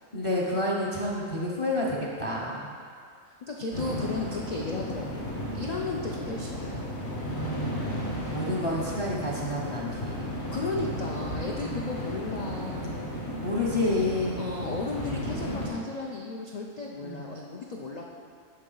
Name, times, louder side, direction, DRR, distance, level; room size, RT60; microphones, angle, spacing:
voice 1, 0.1-2.7 7.3-8.0 8.3-10.4 11.6-11.9 13.4-14.4 17.0-17.3, left 1 dB, 30° left, -3 dB, 0.6 m, -29 dB
voice 2, 3.4-7.0 8.3-8.6 10.5-13.0 14.4-18.1, left 3 dB, 70° left, -1 dB, 0.3 m, -35 dB
sound 1, 3.7-15.7, equal, 55° left, 1.9 m, -34 dB
11.0 x 4.1 x 3.9 m, 2.1 s
omnidirectional pair, 1.4 m